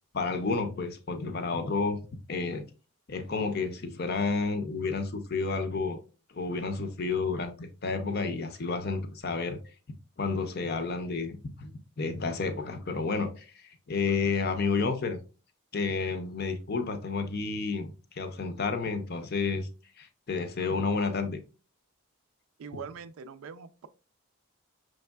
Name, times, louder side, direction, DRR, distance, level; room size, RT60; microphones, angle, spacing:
voice 1, 0.1-2.0 2.3-2.6 3.1-6.0 6.3-9.6 10.2-11.7 12.0-15.2 15.7-19.7 20.0-21.4, left 4 dB, 45° left, 0.5 m, -30 dB
voice 2, 22.6-23.9, right 5 dB, 75° right, 0.4 m, -42 dB
5.2 x 3.2 x 2.3 m
head